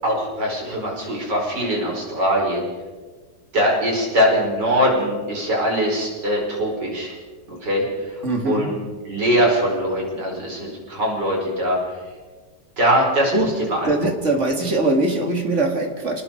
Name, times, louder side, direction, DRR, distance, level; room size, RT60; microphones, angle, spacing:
voice 1, 0.0-2.7 3.5-7.1 7.6-7.8 8.4-8.8 9.1-11.8 12.8-13.3 13.6-13.9, equal, 65° right, -1 dB, 6.0 m, -21 dB
voice 2, 8.2-8.7 13.3-13.5 13.8-16.2, right 2 dB, 40° right, 3 dB, 2.8 m, -21 dB
28.0 x 19.5 x 4.7 m, 1.4 s
omnidirectional pair, 2.0 m